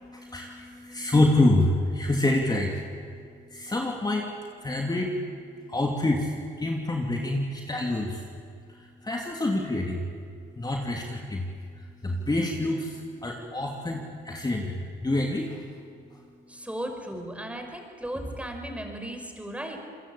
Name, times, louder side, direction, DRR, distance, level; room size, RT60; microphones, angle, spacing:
voice 1, 0.0-2.8 3.5-4.3 4.6-5.1 5.7-6.3 6.6-8.2 9.0-10.0 10.6-11.5 12.0-15.6, left 2 dB, 20° left, 0 dB, 2.9 m, -26 dB
voice 2, 16.5-19.8, right 1 dB, 5° right, 4 dB, 5.2 m, -36 dB
27.5 x 21.5 x 8.6 m, 2.3 s
cardioid pair, 90°, 20 cm